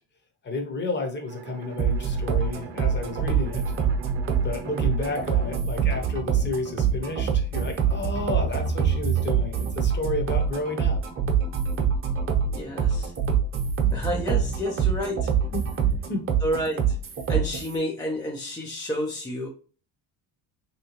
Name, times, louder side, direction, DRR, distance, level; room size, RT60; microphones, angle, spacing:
voice 1, 0.4-3.6 4.4-11.0 15.5-15.7 16.1-16.3, left 3 dB, 25° left, 5 dB, 0.7 m, -31 dB
Bowed string instrument, 1.3-6.9, right 8 dB, 70° right, 0.7 m, -42 dB
sound 1, 1.8-17.8, right 7 dB, 30° right, 0.8 m, -25 dB
voice 2, 12.5-13.1 13.9-15.3 16.4-17.0 17.3-19.5, equal, 10° left, 0 dB, 0.3 m, -30 dB
3.3 x 2.9 x 2.8 m, 0.39 s
cardioid pair, 120°, 42 cm